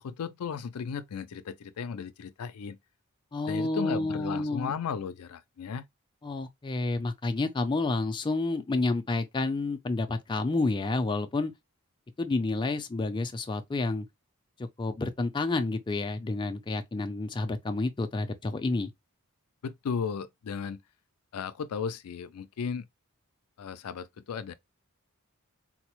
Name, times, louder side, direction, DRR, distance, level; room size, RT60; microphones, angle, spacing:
voice 1, 0.0-2.8 3.5-5.9 19.6-20.8 21.3-22.9 23.6-24.5, left 6 dB, 85° left, 0.4 m, -35 dB
voice 2, 3.3-4.7 6.2-11.5 12.2-14.1 14.8-18.9, left 2 dB, 20° left, 0.4 m, -29 dB
4.0 x 2.1 x 2.9 m
head